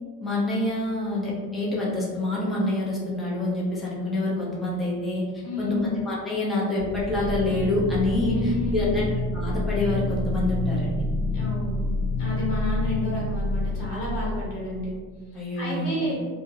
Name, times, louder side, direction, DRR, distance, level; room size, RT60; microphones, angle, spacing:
voice 1, 0.2-5.2 5.6-9.1 9.3-11.1 15.3-16.1, left 2 dB, ahead, -7 dB, 0.7 m, -26 dB
voice 2, 5.4-6.0 8.2-9.2 11.3-11.8 12.2-14.9 15.3-16.2, left 1 dB, 75° left, -5 dB, 1.2 m, -30 dB
sound 1, 6.8-14.6, left 2 dB, 40° left, 0.7 m, -28 dB
2.7 x 2.2 x 2.6 m, 1.5 s
hypercardioid pair, 70°, 48 cm